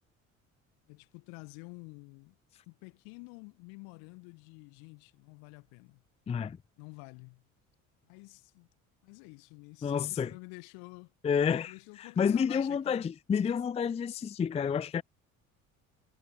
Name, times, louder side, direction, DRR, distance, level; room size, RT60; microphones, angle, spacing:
voice 1, 0.9-2.3 2.7-6.0 6.8-7.5 8.0-8.7 9.0-11.1 11.7-13.1, left 32 dB, 60° left, 1.3 m, -50 dB
voice 2, 6.3-6.6 9.8-10.3 11.2-15.0, left 7 dB, 15° left, 0.5 m, -30 dB
figure-of-eight pair, 55°, 40 cm